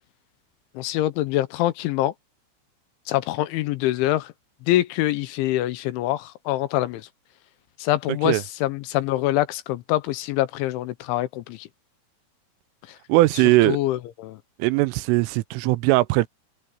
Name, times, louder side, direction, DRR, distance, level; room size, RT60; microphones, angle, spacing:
voice 1, 0.8-2.1 3.1-4.3 4.7-7.0 7.8-11.7 13.7-14.4, left 15 dB, 80° left, 3.0 m, -25 dB
voice 2, 13.1-13.8 14.6-16.3, right 19 dB, 85° right, 3.2 m, -19 dB
omnidirectional pair, 5.8 m